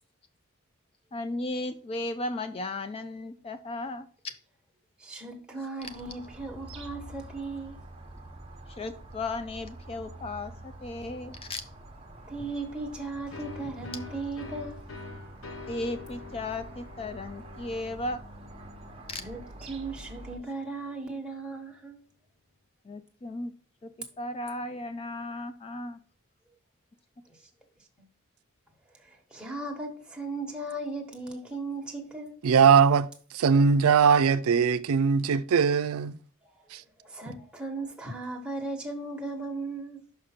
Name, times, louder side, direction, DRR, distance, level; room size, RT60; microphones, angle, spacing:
voice 1, 1.1-4.1 8.7-11.6 15.7-18.2 19.1-19.2 22.8-23.5 23.8-23.9 24.2-26.0, left 2 dB, 25° left, 0.3 m, -35 dB
voice 2, 5.0-7.8 12.2-14.8 19.2-22.0 29.0-32.4 37.0-40.0, right 3 dB, 5° right, 1.2 m, -37 dB
sound 1, 5.8-20.4, right 1 dB, 25° right, 0.9 m, -47 dB
sound 2, 13.3-20.8, left 3 dB, 70° left, 0.9 m, -46 dB
voice 3, 32.4-36.2 36.7-36.8, right 6 dB, 90° right, 0.4 m, -21 dB
5.7 x 5.0 x 4.3 m
head